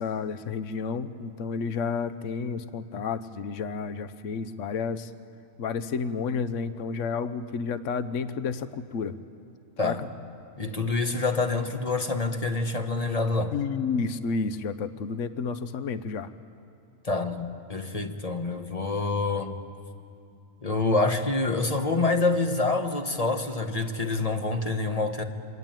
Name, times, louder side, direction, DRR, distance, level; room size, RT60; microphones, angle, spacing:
voice 1, 0.0-5.1 5.6-9.2 9.8-9.9 13.5-16.3, left 5 dB, 70° left, 12 dB, 1.2 m, -31 dB
voice 2, 9.8-10.1 10.6-13.5 17.0-19.6 20.6-25.2, left 3 dB, 30° left, 5 dB, 1.5 m, -27 dB
27.0 x 24.0 x 9.1 m, 2.8 s
omnidirectional pair, 1.4 m